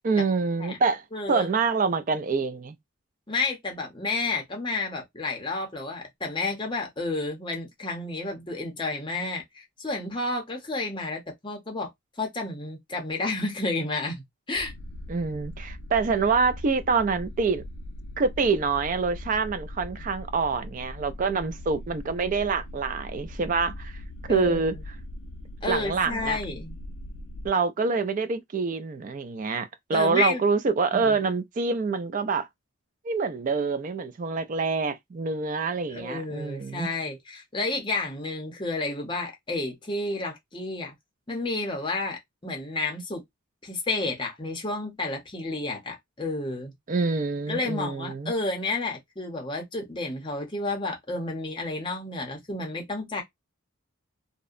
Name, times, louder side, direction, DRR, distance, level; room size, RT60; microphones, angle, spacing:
voice 1, 0.0-1.0 1.3-2.7 15.1-17.6 18.2-23.9 24.3-24.7 25.7-26.4 27.4-32.5 33.0-36.9 46.9-48.3, right 4 dB, 35° right, 0.3 m, -26 dB
voice 2, 1.1-1.5 3.3-11.9 12.2-14.7 24.3-24.7 25.6-26.8 29.9-30.4 30.9-31.2 35.9-40.9 41.3-43.2 43.6-46.7 47.5-53.2, left 2 dB, 20° left, 0.7 m, -31 dB
sound 1, 14.6-27.5, left 1 dB, 60° left, 0.3 m, -40 dB
2.7 x 2.1 x 2.4 m
head